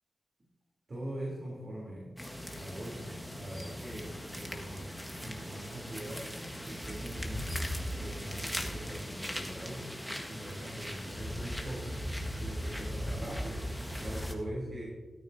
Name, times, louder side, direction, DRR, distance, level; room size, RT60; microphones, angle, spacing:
voice 1, 0.9-6.3 6.6-7.6 7.9-9.9 10.3-12.0 12.4-13.7 14.0-14.9, right 1 dB, 45° right, -4 dB, 3.3 m, -42 dB
sound 1, 2.2-14.3, equal, ahead, 1.6 m, -39 dB
13.5 x 13.0 x 2.8 m, 1.3 s
cardioid pair, 65°, 0 cm